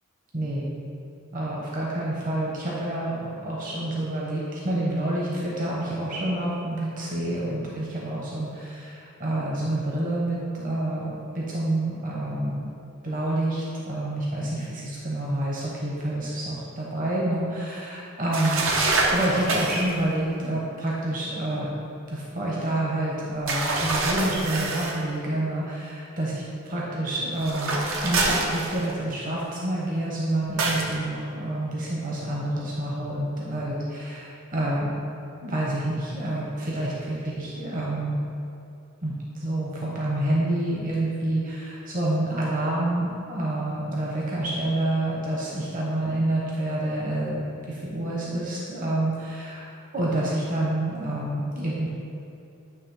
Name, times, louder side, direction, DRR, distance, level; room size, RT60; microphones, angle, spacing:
voice 1, 0.3-0.7 1.3-12.6 13.0-21.7 22.1-34.9 35.4-38.2 39.0-49.7 49.9-51.9, right 1 dB, 40° right, -5 dB, 1.0 m, -28 dB
sound 1, 18.3-19.9 23.5-25.0 27.4-29.1 30.6-30.9, right 2 dB, 65° right, 0.8 m, -26 dB
9.2 x 3.2 x 5.6 m, 2.7 s
head